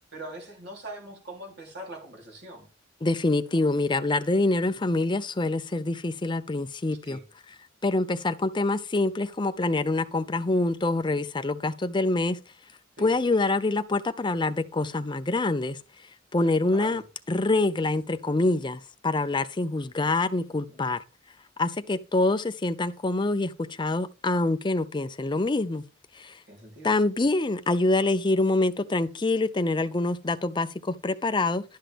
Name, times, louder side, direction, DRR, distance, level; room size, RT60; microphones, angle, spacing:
voice 1, 0.1-2.7 4.7-4.8 7.1-7.2 13.0-13.1 16.5-17.0 20.7-21.0 26.5-26.9, right 1 dB, 60° right, 3.7 m, -42 dB
voice 2, 3.0-7.2 7.8-12.4 13.0-15.8 16.3-17.0 17.3-21.0 21.6-25.8 26.1-26.4 26.8-31.6, left 2 dB, 25° left, 0.6 m, -25 dB
11.5 x 5.9 x 3.5 m
head